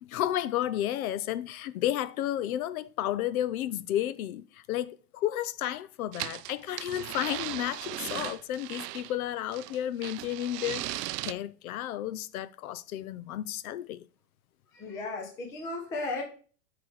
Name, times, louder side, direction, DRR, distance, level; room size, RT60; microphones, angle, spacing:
voice 1, 0.0-14.0, left 12 dB, 65° left, 0.6 m, -32 dB
sound 1, 6.1-9.1 9.5-11.3, right 16 dB, 85° right, 0.5 m, -37 dB
voice 2, 14.7-16.2, left 3 dB, 5° left, 0.4 m, -35 dB
5.8 x 4.9 x 4.6 m
supercardioid pair, 150°, 47 cm